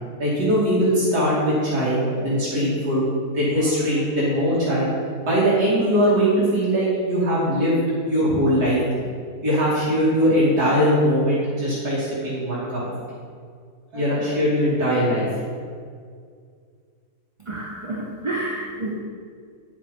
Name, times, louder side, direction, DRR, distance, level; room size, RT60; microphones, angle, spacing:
voice 1, 0.2-3.1 3.3-5.0 5.3-9.1 9.4-12.9 13.9-15.4, equal, 85° right, -9 dB, 3.4 m, -21 dB
voice 2, 17.4-18.9, right 2 dB, 25° right, -2 dB, 0.8 m, -29 dB
10.5 x 7.4 x 5.5 m, 2.1 s
omnidirectional pair, 1.6 m